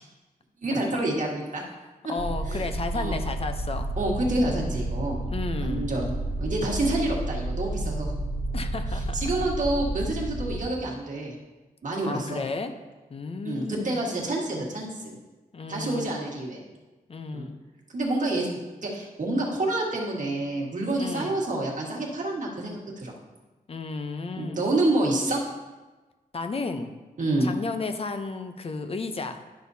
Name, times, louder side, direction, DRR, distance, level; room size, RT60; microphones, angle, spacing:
voice 1, 0.6-1.6 2.4-2.7 2.9-3.2 4.0-5.2 5.6-6.1 6.4-8.1 8.9-11.3 11.8-12.4 13.4-15.1 15.7-16.6 17.3-17.5 17.9-23.1 24.4-25.4 27.2-27.5, right 2 dB, 55° right, -2 dB, 1.6 m, -28 dB
voice 2, 2.1-3.9 5.3-5.9 8.5-9.2 12.0-12.7 13.1-14.0 15.5-16.2 17.1-17.6 20.9-21.4 23.7-24.6 26.3-26.9 27.4-29.4, left 3 dB, 40° left, 7 dB, 0.7 m, -33 dB
sound 1, 2.2-10.6, right 1 dB, 15° left, 1.3 m, -31 dB
11.5 x 6.1 x 2.7 m, 1.2 s
wide cardioid pair, 105°, 16 cm